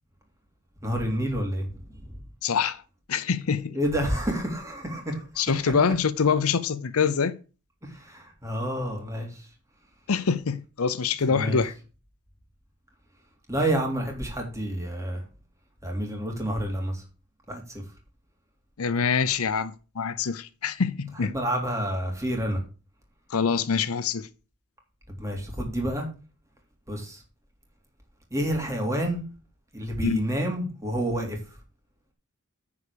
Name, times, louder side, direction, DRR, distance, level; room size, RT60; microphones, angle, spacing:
voice 1, 0.8-2.1 3.7-5.3 7.8-9.5 11.3-11.6 13.5-15.2 15.8-17.0 17.5-17.8 21.2-22.6 25.1-26.1 26.9-27.2 28.3-29.2 29.7-31.4, right 1 dB, 15° right, 3.0 m, -29 dB
voice 2, 2.4-2.8 3.1-3.8 5.4-7.3 10.1-11.7 18.8-21.3 23.3-24.3 30.0-30.2, left 5 dB, 75° left, 0.7 m, -25 dB
9.9 x 4.9 x 6.9 m
head